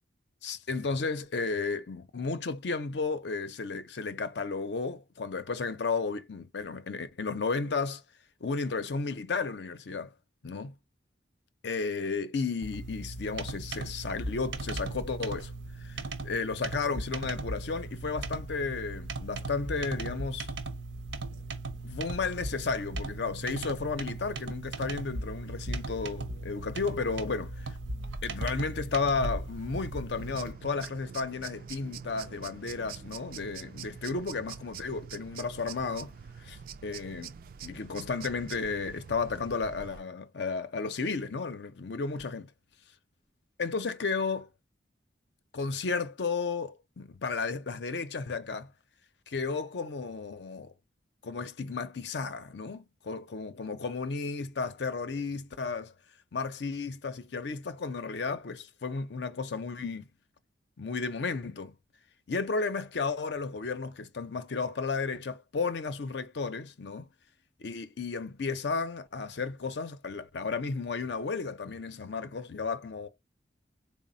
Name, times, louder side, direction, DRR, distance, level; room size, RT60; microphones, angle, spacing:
voice 1, 0.4-8.0 8.4-10.1 10.4-10.7 11.6-15.5 15.8-20.5 21.8-27.7 28.2-37.3 37.6-42.5 43.6-44.5 45.5-48.7 49.3-50.7 51.2-55.9 56.3-60.1 60.8-61.7 62.3-67.1 67.6-73.1, left 4 dB, 65° left, 0.6 m, -33 dB
sound 1, 12.6-30.5, right 2 dB, 85° right, 0.7 m, -38 dB
sound 2, 30.1-40.0, right 7 dB, 50° right, 0.3 m, -45 dB
4.0 x 2.1 x 3.9 m
head